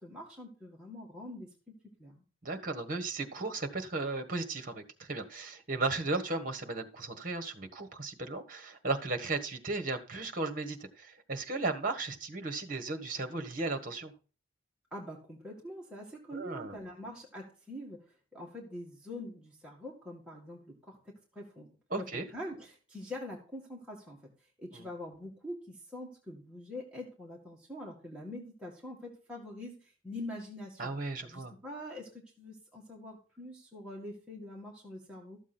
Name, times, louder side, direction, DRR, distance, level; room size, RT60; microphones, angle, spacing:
voice 1, 0.0-1.5 2.0-2.2 14.9-21.0 21.3-21.7 22.0-24.2 24.6-30.9 31.2-32.1 32.4-35.4, left 1 dB, 5° right, -4 dB, 2.0 m, -44 dB
voice 2, 2.4-14.1 16.3-16.8 21.9-22.3 24.7-24.9 30.8-31.5, right 3 dB, 40° right, 6 dB, 1.5 m, -35 dB
13.0 x 7.3 x 4.4 m, 0.36 s
head